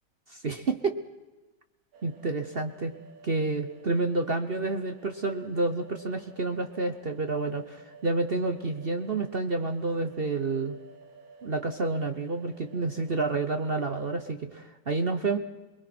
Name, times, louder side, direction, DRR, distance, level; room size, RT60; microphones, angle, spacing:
voice 1, 0.3-1.0 2.0-2.9 3.2-10.8 11.4-15.4, right 3 dB, 40° right, 7 dB, 1.0 m, -29 dB
sound 1, 1.9-14.3, right 4 dB, 60° right, 2.1 m, -53 dB
27.5 x 21.0 x 6.0 m, 1.1 s
omnidirectional pair, 1.9 m